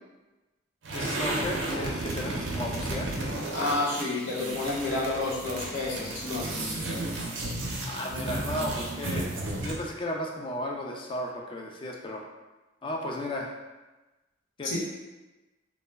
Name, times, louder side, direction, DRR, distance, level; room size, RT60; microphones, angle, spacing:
sound 1, 0.8-9.9, right 1 dB, 85° right, 0.5 m, -33 dB
voice 1, 0.9-3.1 7.8-9.3 9.6-12.2 12.8-13.5 14.6-14.8, left 1 dB, 25° left, 0 dB, 0.3 m, -34 dB
voice 2, 3.5-6.9 14.6-14.8, left 2 dB, 80° left, -6 dB, 0.9 m, -30 dB
2.1 x 2.0 x 3.3 m, 1.1 s
head